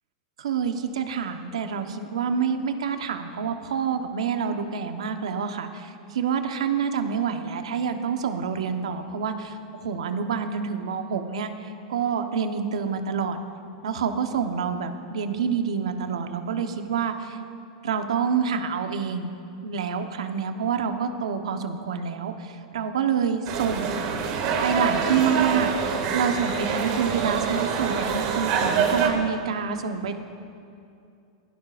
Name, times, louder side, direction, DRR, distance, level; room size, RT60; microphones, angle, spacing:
voice 1, 0.4-9.6 9.8-11.5 11.9-13.4 13.8-17.4 17.8-19.3 19.6-24.0 24.6-30.2, right 6 dB, 85° right, 6 dB, 1.2 m, -27 dB
sound 1, 23.5-29.1, right 6 dB, 55° right, 2.2 m, -25 dB
22.5 x 16.5 x 2.6 m, 2.5 s
hypercardioid pair, 130°, 3 cm